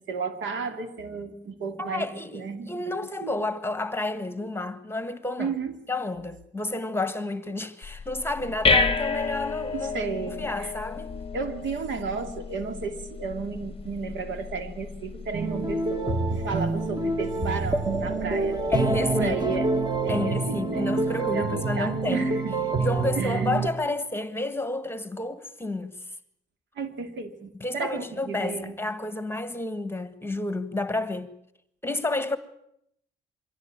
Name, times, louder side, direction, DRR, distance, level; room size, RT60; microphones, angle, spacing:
voice 1, 0.1-2.9 3.2-3.3 5.4-5.7 9.7-10.7 11.3-18.6 19.0-19.7 20.0-22.6 23.2-23.5 26.8-28.7, right 4 dB, 70° right, 2.8 m, -33 dB
voice 2, 1.8-5.5 5.9-9.9 10.3-11.1 18.7-19.6 20.1-22.3 22.8-26.0 27.6-31.3 31.8-32.4, left 2 dB, 10° left, 1.6 m, -30 dB
sound 1, 7.8-18.8, left 4 dB, 30° left, 1.0 m, -32 dB
sound 2, 15.3-23.7, right 3 dB, 20° right, 1.8 m, -27 dB
23.5 x 16.5 x 8.9 m
cardioid pair, 90°, 20 cm